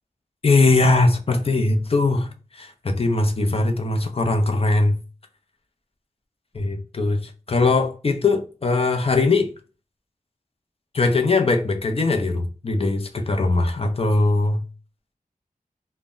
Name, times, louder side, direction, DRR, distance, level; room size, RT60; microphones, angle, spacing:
voice 1, 0.4-5.0 6.5-9.5 10.9-14.6, left 3 dB, 40° left, 0.5 m, -20 dB
2.1 x 2.0 x 3.5 m
wide cardioid pair, 65°, 15 cm